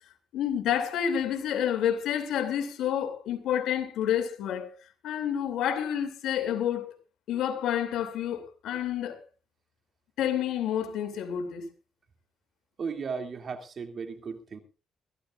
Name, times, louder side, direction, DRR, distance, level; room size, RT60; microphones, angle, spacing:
voice 1, 0.3-4.7 5.0-6.9 7.3-9.2 10.2-11.7, left 9 dB, 80° left, 2.8 m, -29 dB
voice 2, 12.8-14.6, right 5 dB, 50° right, 2.6 m, -35 dB
22.0 x 14.5 x 2.5 m
cardioid pair, 90°, 0 cm